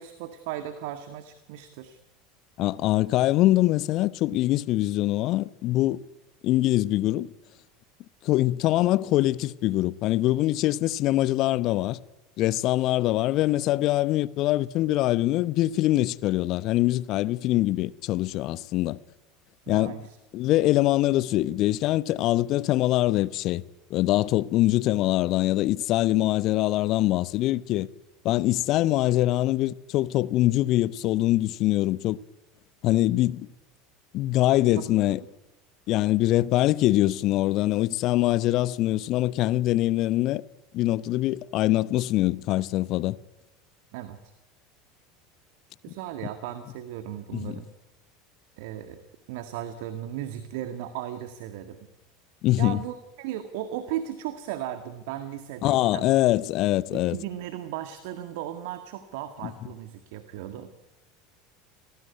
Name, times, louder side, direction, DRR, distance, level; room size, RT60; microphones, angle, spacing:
voice 1, 0.0-2.0 19.7-20.2 34.8-35.2 43.9-44.2 45.8-47.7 48.6-49.0 49.3-51.8 52.6-56.1 56.9-60.7, right 11 dB, 55° right, 1.9 m, -36 dB
voice 2, 2.6-6.0 6.4-7.3 8.2-12.0 12.4-19.0 19.7-20.0 20.3-23.6 23.9-27.9 28.2-32.2 32.8-33.5 34.1-35.2 35.9-40.4 40.7-43.2 47.3-47.6 52.4-52.8 55.6-57.2 59.4-59.5, left 16 dB, 45° left, 0.8 m, -23 dB
29.0 x 19.0 x 9.5 m
figure-of-eight pair, 75°, 0 cm